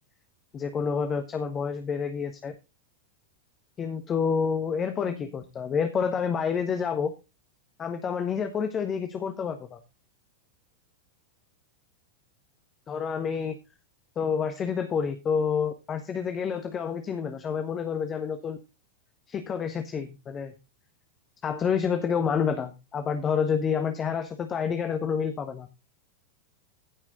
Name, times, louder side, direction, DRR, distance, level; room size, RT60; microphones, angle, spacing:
voice 1, 0.5-2.5 3.8-7.1 7.8-9.8 12.9-13.6 14.2-18.6 19.3-20.5 21.4-25.7, left 6 dB, 25° left, 7 dB, 1.4 m, -28 dB
15.0 x 6.1 x 3.9 m, 0.27 s
figure-of-eight pair, 90°, 0 cm